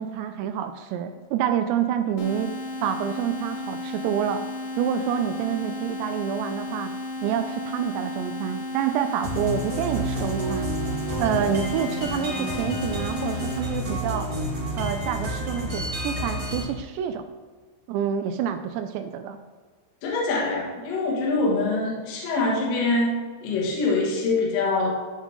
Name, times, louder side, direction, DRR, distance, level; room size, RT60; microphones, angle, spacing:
voice 1, 0.0-2.5 2.8-4.4 4.8-6.9 7.2-10.7 11.2-14.3 14.7-17.3 17.9-19.4, right 9 dB, 85° right, 8 dB, 2.5 m, -27 dB
sound 1, 2.2-13.6, left 2 dB, 75° left, 3.0 m, -34 dB
sound 2, 9.2-16.6, equal, 30° right, 1.5 m, -30 dB
voice 2, 20.0-23.1 23.4-24.9, left 3 dB, 60° left, -3 dB, 2.8 m, -24 dB
14.0 x 4.9 x 3.7 m, 1.5 s
omnidirectional pair, 5.3 m